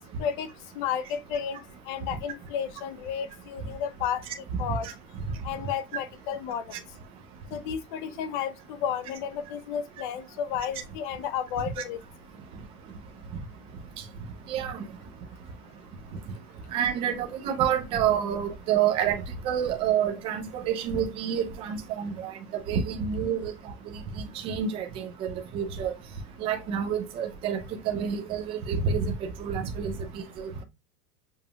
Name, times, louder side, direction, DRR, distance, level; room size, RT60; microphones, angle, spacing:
voice 1, 0.7-4.2 4.6-4.9 5.4-6.6 7.5-12.0, left 8 dB, 30° left, 0.6 m, -32 dB
voice 2, 14.5-14.8 16.7-23.5 24.4-25.9 26.4-27.6 27.8-30.6, right 8 dB, 15° right, 0.4 m, -28 dB
7.1 x 2.7 x 2.3 m
supercardioid pair, 150°, 47 cm